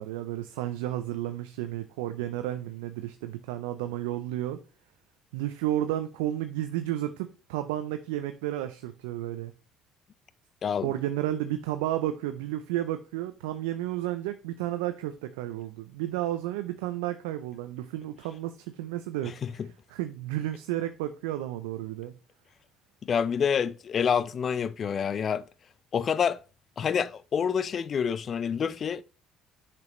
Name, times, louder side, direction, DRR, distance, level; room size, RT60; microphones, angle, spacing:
voice 1, 0.0-4.6 5.3-9.5 10.8-19.4 19.9-22.1, right 13 dB, 90° right, 0.5 m, -32 dB
voice 2, 10.6-10.9 19.4-19.7 23.0-25.4 25.9-26.4 26.8-29.0, left 7 dB, 45° left, 0.5 m, -27 dB
7.4 x 5.9 x 3.1 m
supercardioid pair, 70°, 0 cm